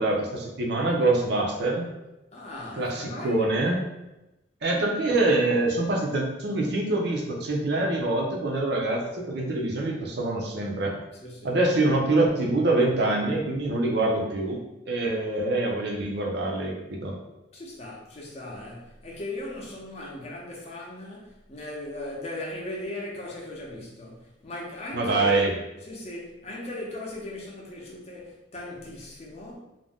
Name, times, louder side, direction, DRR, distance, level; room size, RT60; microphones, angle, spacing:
voice 1, 0.0-1.9 2.8-3.8 4.6-10.9 11.4-14.6 14.9-17.2 24.9-25.5, right 2 dB, 60° right, 0.5 m, -25 dB
voice 2, 2.3-3.5 11.2-11.6 17.5-25.4 25.8-29.6, left 1 dB, 35° left, 0.6 m, -38 dB
2.5 x 2.1 x 3.4 m
head